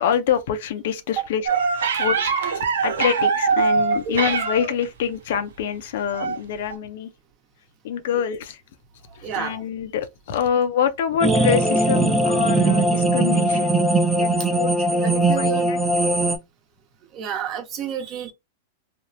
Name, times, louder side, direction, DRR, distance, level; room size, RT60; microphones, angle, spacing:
voice 1, 0.0-7.1 7.8-8.6 9.1-13.9 14.2-15.8, left 8 dB, 70° left, 0.5 m, -26 dB
sound 1, 1.5-4.8 6.1-6.4 6.7-6.8, right 5 dB, 85° right, 0.7 m, -22 dB
voice 2, 9.2-9.5 15.0-15.7 17.1-18.3, right 8 dB, 40° right, 0.8 m, -29 dB
sound 2, 11.2-16.4, right 2 dB, 10° right, 0.5 m, -20 dB
3.4 x 2.0 x 2.6 m
hypercardioid pair, 125°, 0 cm